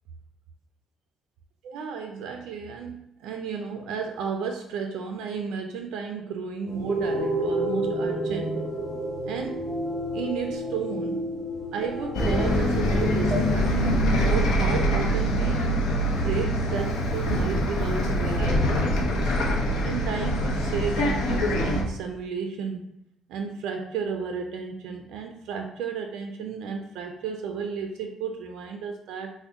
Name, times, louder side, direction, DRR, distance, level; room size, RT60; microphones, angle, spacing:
voice 1, 1.6-8.6 9.2-9.7 10.1-11.3 11.7-15.8 16.2-19.3 19.8-22.9 23.3-29.3, right 6 dB, 90° right, 4 dB, 0.3 m, -33 dB
sound 1, 6.7-13.4, right 1 dB, 10° right, 0.8 m, -30 dB
Bus, 12.1-21.8, equal, 90° left, 0.6 m, -24 dB
3.8 x 2.1 x 3.5 m, 0.79 s
cardioid pair, 135°, 0 cm